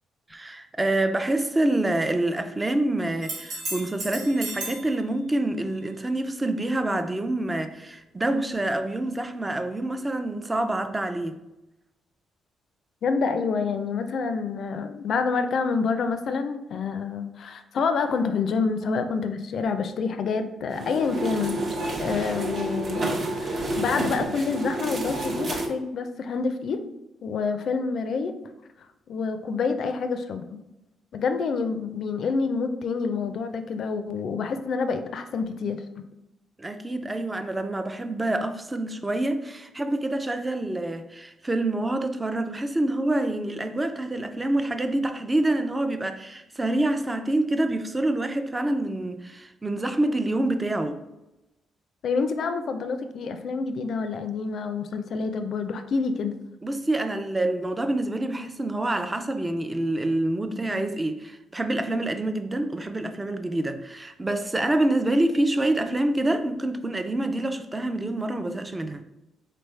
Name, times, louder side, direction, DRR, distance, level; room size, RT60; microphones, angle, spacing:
voice 1, 0.3-11.4 36.6-51.0 56.6-69.0, right 1 dB, 20° right, 0.4 m, -26 dB
sound 1, 3.2-4.9 8.5-8.6, right 2 dB, 90° right, 1.2 m, -34 dB
voice 2, 13.0-21.6 22.0-26.9 27.2-28.4 29.1-30.6 31.1-35.8 52.0-56.3, left 5 dB, 65° left, 0.4 m, -27 dB
sound 2, 20.7-25.7, right 2 dB, 50° right, 0.7 m, -29 dB
4.0 x 3.3 x 3.1 m
cardioid pair, 85°, 0 cm